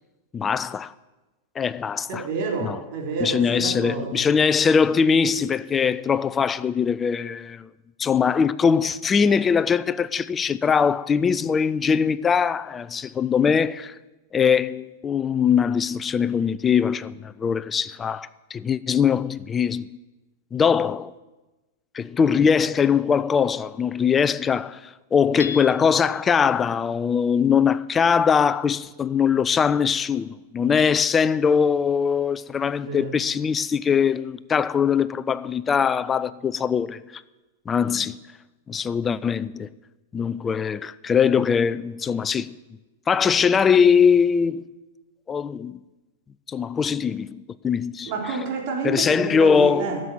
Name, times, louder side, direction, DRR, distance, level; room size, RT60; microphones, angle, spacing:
voice 1, 0.3-0.9 1.6-2.2 2.6-2.8 3.2-7.7 8.0-13.9 14.3-19.9 20.5-21.1 21.9-37.2 37.7-38.2 38.7-39.7 40.1-42.6 43.1-44.6 45.3-45.8 46.5-48.1 48.8-50.0, left 6 dB, 20° left, 0.5 m, -21 dB
voice 2, 2.1-4.2 32.8-33.2 40.4-40.5 48.1-50.0, right 4 dB, 45° right, 3.5 m, -29 dB
Hammer / Chink clink, 25.4-26.2, left 6 dB, 80° left, 0.8 m, -35 dB
12.5 x 7.5 x 9.5 m
hypercardioid pair, 100°, 0 cm